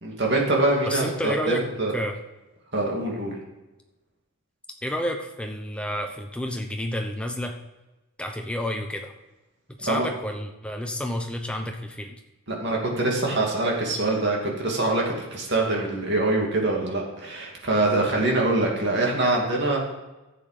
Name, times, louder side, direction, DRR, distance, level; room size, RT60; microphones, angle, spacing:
voice 1, 0.0-2.0 2.7-3.4 9.8-10.1 12.5-19.8, right 2 dB, 50° right, -1 dB, 2.4 m, -24 dB
voice 2, 0.8-1.6 1.9-2.1 4.8-7.5 8.2-9.1 9.7-12.2, left 1 dB, 5° left, 3 dB, 0.9 m, -30 dB
11.5 x 7.6 x 5.0 m, 1.1 s
head